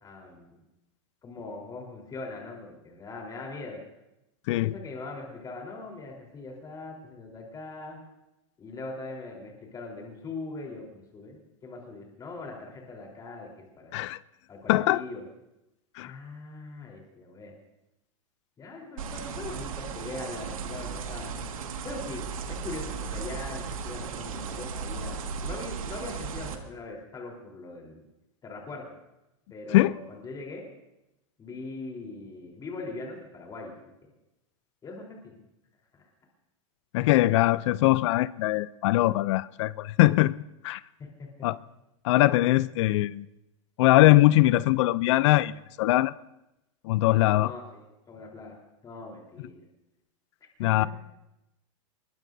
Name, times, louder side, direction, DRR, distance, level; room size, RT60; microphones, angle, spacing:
voice 1, 0.0-0.6 1.2-3.8 4.6-8.0 8.6-14.0 14.5-15.2 16.0-17.5 18.6-21.4 21.8-28.0 28.4-28.8 29.5-30.6 31.4-33.9 34.8-35.4 35.9-36.1 41.0-41.3 47.4-48.6 48.8-49.6 50.6-50.7, left 3 dB, 20° left, 3.9 m, -41 dB
voice 2, 14.7-15.0 16.0-16.1 29.7-30.0 36.9-40.3 40.6-40.8 41.4-41.6 42.0-43.3 43.8-45.5 45.8-46.1 46.8-47.5 50.6-50.9, left 17 dB, 60° left, 0.5 m, -21 dB
sound 1, 19.0-26.6, right 6 dB, 90° right, 1.9 m, -36 dB
24.0 x 21.0 x 2.7 m
hypercardioid pair, 130°, 17 cm